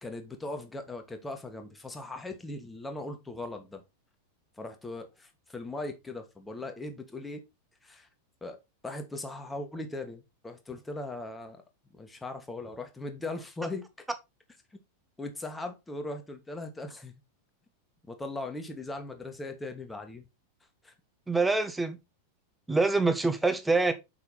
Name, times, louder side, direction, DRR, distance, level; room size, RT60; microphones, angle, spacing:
voice 1, 0.0-3.8 4.6-7.4 7.8-8.1 8.4-11.6 11.9-13.9 15.2-17.1 18.1-20.2 20.8-20.9, left 2 dB, 10° left, 1.6 m, -39 dB
voice 2, 21.3-22.0 22.7-23.9, right 3 dB, 5° right, 1.0 m, -25 dB
7.1 x 5.6 x 4.1 m
figure-of-eight pair, 90°, 0 cm